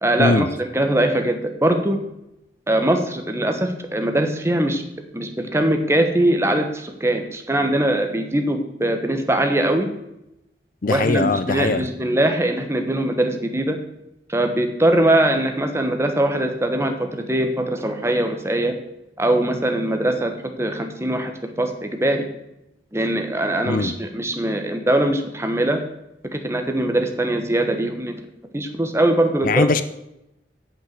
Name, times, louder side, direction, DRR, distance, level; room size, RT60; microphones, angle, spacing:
voice 1, 0.0-2.0 2.7-4.8 5.1-9.9 10.9-13.8 14.3-18.8 19.2-20.3 20.6-22.2 22.9-25.8 26.3-28.2 28.5-29.7, right 1 dB, 15° right, 5 dB, 1.2 m, -21 dB
voice 2, 10.8-11.9 23.7-23.9 29.4-29.8, left 3 dB, 50° left, 13 dB, 0.5 m, -20 dB
8.7 x 7.5 x 6.6 m, 0.86 s
head